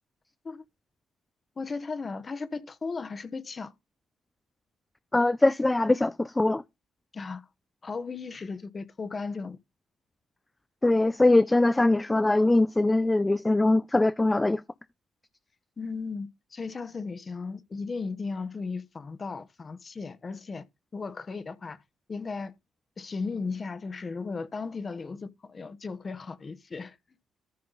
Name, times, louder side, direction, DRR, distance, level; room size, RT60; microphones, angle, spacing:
voice 1, 1.6-3.7 7.1-7.5 7.8-9.6 15.8-20.7 20.9-21.8 22.1-22.5 23.0-27.0, left 4 dB, 35° left, 1.0 m, -36 dB
voice 2, 5.1-6.6 10.8-14.6, left 2 dB, 15° left, 0.4 m, -22 dB
14.0 x 5.5 x 3.9 m
cardioid pair, 90°, 0 cm